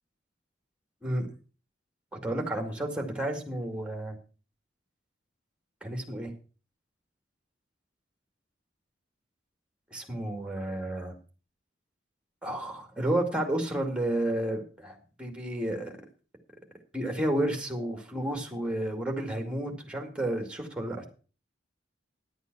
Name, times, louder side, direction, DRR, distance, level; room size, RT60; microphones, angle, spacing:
voice 1, 2.2-4.2 5.8-6.3 9.9-11.2 12.4-15.9 16.9-21.0, right 1 dB, 5° right, 4 dB, 2.2 m, -31 dB
11.0 x 8.1 x 6.1 m, 0.37 s
head